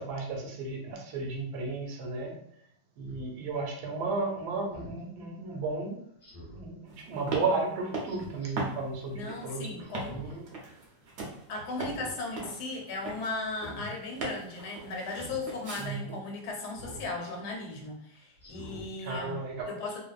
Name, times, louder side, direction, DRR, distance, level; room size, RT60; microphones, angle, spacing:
voice 1, 0.0-2.3 3.0-6.0 6.5-10.7 15.8-16.2 19.0-19.7, right 3 dB, 80° right, 1 dB, 1.2 m, -34 dB
Speech synthesizer, 3.1-3.2 4.7-5.0 6.2-6.7 8.0-8.5 9.8-10.3 10.7-10.8 11.7-12.2 12.6-12.9 13.5-13.9 15.1-15.4 16.7-17.1 17.6-17.7 18.4-18.9 19.3-19.4, equal, 40° left, 1.0 m, -46 dB
sound 1, 6.9-15.8, right 3 dB, 60° right, 0.8 m, -40 dB
voice 2, 9.1-10.2 11.5-19.3 19.7-20.0, left 3 dB, 85° left, 1 dB, 1.2 m, -37 dB
2.6 x 2.3 x 2.3 m, 0.70 s
omnidirectional pair, 1.7 m